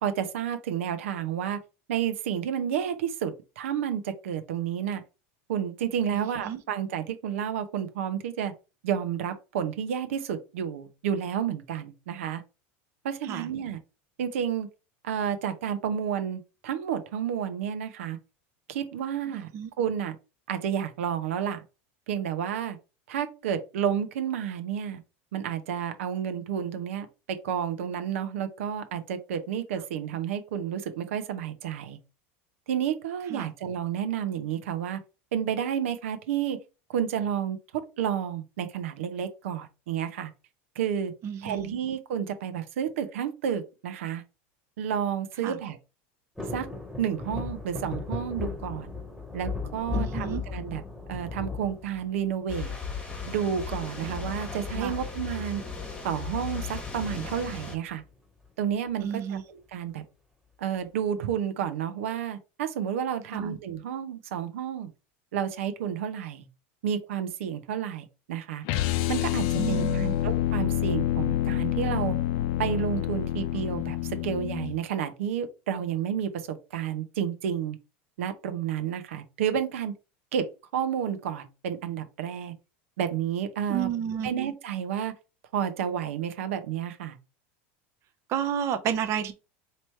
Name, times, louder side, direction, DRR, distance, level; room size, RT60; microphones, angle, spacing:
voice 1, 0.0-1.6 1.9-5.0 5.5-8.5 8.8-12.4 13.0-13.8 14.2-14.7 15.0-18.2 18.7-19.5 19.8-20.2 20.5-21.6 22.1-22.8 23.1-25.0 25.3-27.1 27.4-32.0 32.7-35.0 35.3-36.6 36.9-37.6 38.0-40.3 40.8-41.1 41.4-44.2 44.8-45.8 46.5-46.7 47.0-48.9 49.3-50.8 51.1-52.7 53.3-55.6 56.0-58.0 58.6-60.0 60.6-64.9 65.3-66.5 66.8-68.6 69.1-72.2 72.6-77.8 78.2-79.9 80.3-80.4 80.7-82.5 83.0-83.9 84.2-85.1 85.5-87.2, right 8 dB, 90° right, 0.8 m, -30 dB
voice 2, 6.1-6.6 13.2-13.5 19.3-19.7 33.3-33.5 41.2-41.7 45.4-45.6 49.9-50.4 54.7-55.0 59.0-59.4 63.3-63.5 69.6-70.2 83.7-84.5 88.3-89.3, right 8 dB, 45° right, 0.6 m, -31 dB
sound 1, 46.4-52.5 53.0-53.6 54.9-55.3 55.5-55.6 55.9-56.2 57.0-58.0 58.4-58.5, left 4 dB, ahead, 1.5 m, -36 dB
sound 2, 52.5-57.8, left 5 dB, 15° left, 1.2 m, -36 dB
sound 3, 68.6-74.8, left 12 dB, 60° left, 0.5 m, -27 dB
3.1 x 2.9 x 4.5 m
supercardioid pair, 125°, 7 cm